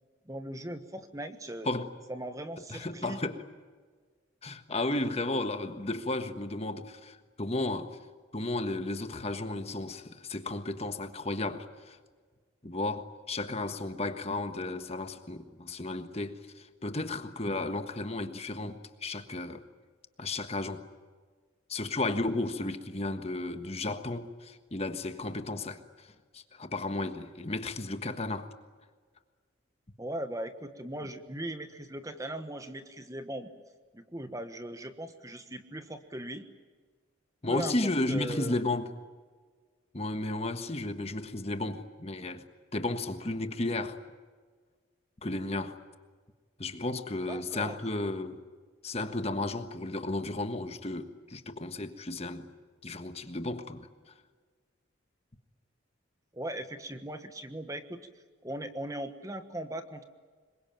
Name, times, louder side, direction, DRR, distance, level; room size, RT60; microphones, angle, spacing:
voice 1, 0.2-1.7 2.1-3.2 30.0-33.5 33.9-36.4 37.5-38.6 47.3-47.8 56.3-58.1 58.4-60.0, right 1 dB, 15° right, 1.3 m, -39 dB
voice 2, 2.7-3.4 4.4-8.0 8.3-12.0 12.6-19.6 20.2-20.8 21.7-28.5 37.4-38.9 39.9-42.4 42.7-44.0 45.2-45.8 46.6-48.4 48.8-52.5 52.8-53.8 54.1-54.2, left 2 dB, 30° left, 1.4 m, -33 dB
26.5 x 22.5 x 9.1 m
head